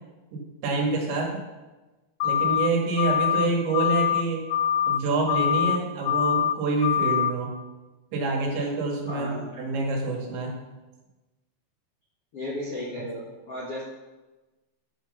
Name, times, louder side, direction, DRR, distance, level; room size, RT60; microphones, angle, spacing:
voice 1, 0.3-1.4 2.2-4.4 4.9-7.5 8.1-10.6 13.0-13.1, right 3 dB, 75° right, -1 dB, 4.2 m, -27 dB
sound 1, 2.2-2.7 3.0-3.5 3.7-4.2 4.5-5.0 5.3-5.8 6.1-6.5 6.8-7.3, left 9 dB, 85° left, 3.1 m, -24 dB
voice 2, 9.1-9.5 12.3-13.8, left 1 dB, 50° left, -6 dB, 1.9 m, -34 dB
11.5 x 6.5 x 6.7 m, 1.2 s
omnidirectional pair, 5.4 m